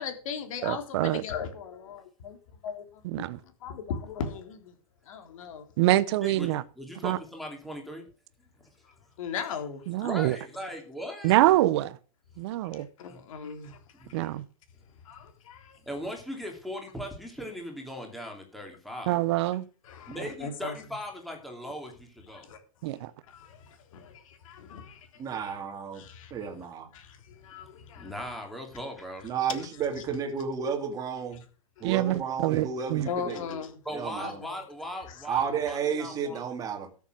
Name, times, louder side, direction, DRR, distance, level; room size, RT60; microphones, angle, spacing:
voice 1, 0.0-2.4 2.6-3.2 3.6-4.7 5.1-5.6 9.2-10.1 12.7-14.3 15.0-15.8 19.8-20.7 22.3-22.6 23.3-25.1 25.4-25.5 25.9-26.5 26.9-28.1 29.6-29.7 33.0-33.8 34.2-34.3 35.1-35.2, left 6 dB, 60° left, 3.4 m, -38 dB
voice 2, 0.6-1.2 3.0-3.4 5.8-6.6 7.0-7.2 9.9-10.4 11.2-11.9 12.4-12.9 14.1-14.4 19.1-19.7 20.2-20.3 22.8-23.1 31.8-33.1, right 16 dB, 45° right, 0.8 m, -25 dB
voice 3, 6.2-8.1 10.0-11.4 13.1-13.2 14.0-14.2 15.9-19.2 20.1-22.5 28.0-29.3 33.8-36.4, equal, ahead, 2.8 m, -39 dB
voice 4, 25.2-26.0 26.3-26.9 29.2-31.4 31.8-33.6 33.9-34.3 35.3-36.9, right 7 dB, 20° right, 2.2 m, -32 dB
13.5 x 7.2 x 6.1 m
supercardioid pair, 155°, 19 cm